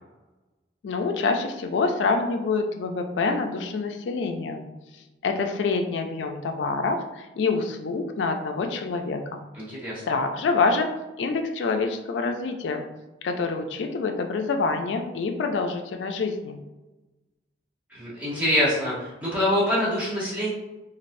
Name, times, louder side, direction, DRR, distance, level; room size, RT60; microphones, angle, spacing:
voice 1, 0.8-4.7 5.2-9.4 10.1-10.9 11.2-12.8 13.2-16.6, left 4 dB, 85° left, 4 dB, 0.4 m, -26 dB
voice 2, 9.5-10.0 17.9-20.5, left 1 dB, 10° right, -9 dB, 1.1 m, -25 dB
3.2 x 2.4 x 2.5 m, 1.1 s
head